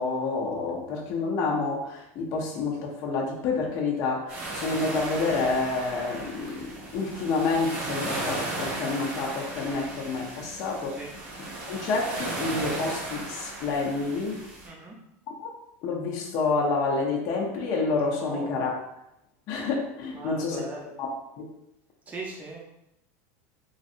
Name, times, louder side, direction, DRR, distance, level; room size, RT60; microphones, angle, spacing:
voice 1, 0.0-10.9 11.7-14.4 15.4-15.5 15.8-18.7 19.5-20.6 21.0-21.1 21.4-21.5, left 3 dB, 45° left, -1 dB, 0.6 m, -28 dB
sound 1, 4.3-14.7, right 2 dB, 65° right, 1.1 m, -36 dB
voice 2, 14.6-15.0 18.2-18.6 20.1-20.9 22.1-22.6, right 2 dB, 20° right, -1 dB, 0.6 m, -39 dB
3.1 x 2.7 x 2.5 m, 0.83 s
supercardioid pair, 150°, 8 cm